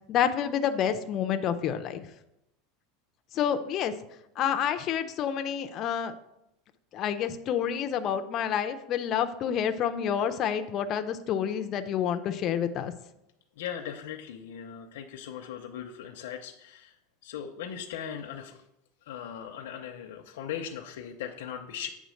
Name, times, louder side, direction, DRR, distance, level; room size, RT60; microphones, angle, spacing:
voice 1, 0.0-2.1 3.3-3.9 4.4-6.1 6.9-12.9, left 8 dB, 30° left, 8 dB, 0.4 m, -28 dB
voice 2, 13.5-17.0 17.2-18.6 19.0-21.9, left 9 dB, 80° left, 3 dB, 0.7 m, -39 dB
8.2 x 3.6 x 6.3 m, 0.84 s
supercardioid pair, 175°, 0 cm